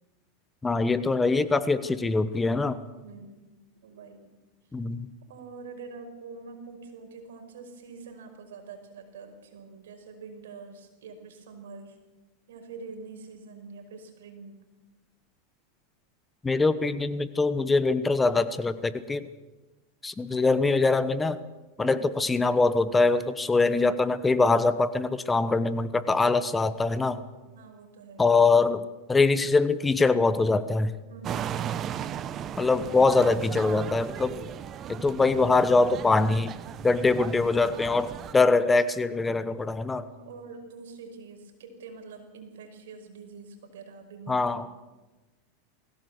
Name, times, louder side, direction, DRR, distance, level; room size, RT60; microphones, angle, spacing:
voice 1, 0.6-2.8 4.7-5.1 16.4-19.3 20.0-21.4 21.8-27.2 28.2-28.8 29.1-30.9 32.6-34.3 34.9-36.5 36.8-40.1 44.3-44.7, left 3 dB, 15° left, 14 dB, 1.0 m, -23 dB
voice 2, 2.8-3.5 3.8-4.3 5.3-12.0 12.5-14.6 21.8-22.2 23.4-24.0 27.4-28.2 31.1-31.8 40.0-44.7, right 4 dB, 85° right, 5 dB, 5.4 m, -46 dB
sound 1, 31.2-38.3, right 9 dB, 35° right, 1.0 m, -36 dB
20.5 x 17.0 x 8.0 m, 1.2 s
supercardioid pair, 125°, 0 cm